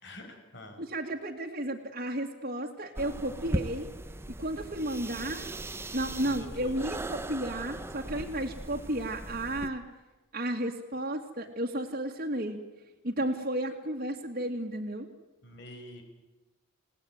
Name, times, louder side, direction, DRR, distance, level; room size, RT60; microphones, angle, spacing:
voice 1, 0.0-0.8 6.2-6.9 15.4-16.0, left 1 dB, 55° left, 4 dB, 5.9 m, -46 dB
voice 2, 0.8-3.9 4.3-5.5 5.9-9.8 10.3-12.6 13.0-15.1, right 1 dB, 45° right, -2 dB, 2.2 m, -33 dB
sound 1, 3.0-9.7, right 1 dB, 10° right, 0.9 m, -38 dB
28.5 x 18.0 x 9.4 m, 1.1 s
head